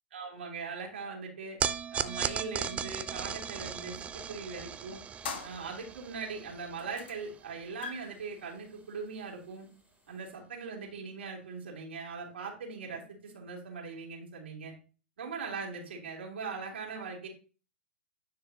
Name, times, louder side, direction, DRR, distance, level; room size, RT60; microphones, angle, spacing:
voice 1, 0.1-1.6 1.9-5.0 5.4-9.7 10.1-14.7 15.2-17.3, right 5 dB, 75° right, -1 dB, 2.7 m, -40 dB
sound 1, 1.6-8.0, right 7 dB, 20° right, 0.5 m, -37 dB
sound 2, 5.2-6.2 6.8-7.3 7.6-10.3, left 6 dB, 65° left, 1.3 m, -44 dB
9.7 x 4.8 x 2.8 m, 0.37 s
hypercardioid pair, 110°, 6 cm